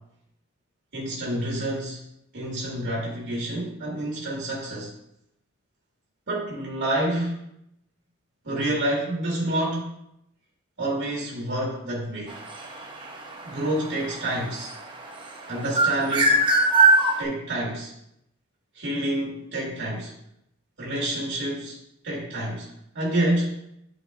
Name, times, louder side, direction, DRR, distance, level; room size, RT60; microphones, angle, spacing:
voice 1, 0.9-2.0 2.3-4.9 6.3-7.4 8.4-9.9 10.8-12.3 13.5-14.7 15.5-16.4 17.2-17.9 18.7-20.1 20.8-21.8 22.0-22.7 22.9-23.5, right 1 dB, 60° right, -5 dB, 1.7 m, -28 dB
sound 1, 12.3-15.2 15.6-17.2, right 2 dB, 25° right, 0.7 m, -20 dB
9.9 x 4.7 x 2.4 m, 0.78 s
head